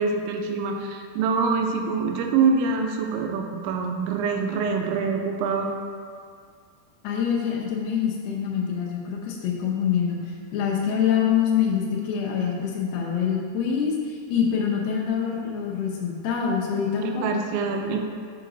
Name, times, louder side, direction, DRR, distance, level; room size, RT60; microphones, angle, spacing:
voice 1, 0.0-5.7 17.0-18.1, right 5 dB, 90° right, 3 dB, 3.0 m, -25 dB
voice 2, 7.0-10.2 10.5-17.3, left 7 dB, 75° left, -2 dB, 2.6 m, -25 dB
6.8 x 5.2 x 3.9 m, 2.1 s
omnidirectional pair, 5.2 m